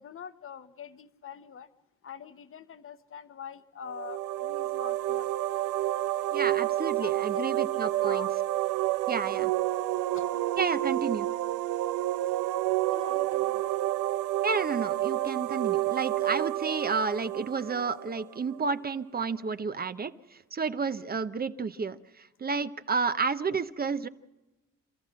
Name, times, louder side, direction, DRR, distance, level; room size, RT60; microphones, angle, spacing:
voice 1, 0.0-1.7 2.0-5.3 6.4-8.3 10.1-10.3 12.9-13.6, left 7 dB, 45° left, 12 dB, 1.2 m, -44 dB
sound 1, 3.9-18.6, right 15 dB, 85° right, 0.6 m, -29 dB
voice 2, 6.3-8.3 9.1-9.5 10.6-11.3 14.4-20.1 20.5-24.1, right 5 dB, 30° right, 12 dB, 0.8 m, -31 dB
28.0 x 14.0 x 7.5 m, 1.0 s
cardioid pair, 90°, 30 cm